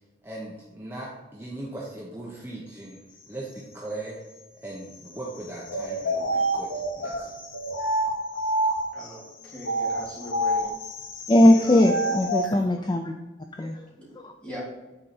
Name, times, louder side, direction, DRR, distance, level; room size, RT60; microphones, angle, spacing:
voice 1, 0.2-3.0 3.3-4.2 4.6-7.3, right 2 dB, 10° right, -5 dB, 1.0 m, -38 dB
sound 1, 5.7-9.1 9.6-12.5, right 1 dB, 90° left, 1.0 m, -27 dB
voice 2, 8.9-10.7 13.9-14.1 14.4-14.6, equal, 5° left, -7 dB, 2.9 m, -40 dB
voice 3, 11.3-13.1 13.6-13.8 14.2-14.3, left 1 dB, 20° left, 4 dB, 0.4 m, -19 dB
9.9 x 4.4 x 4.3 m, 1.1 s
head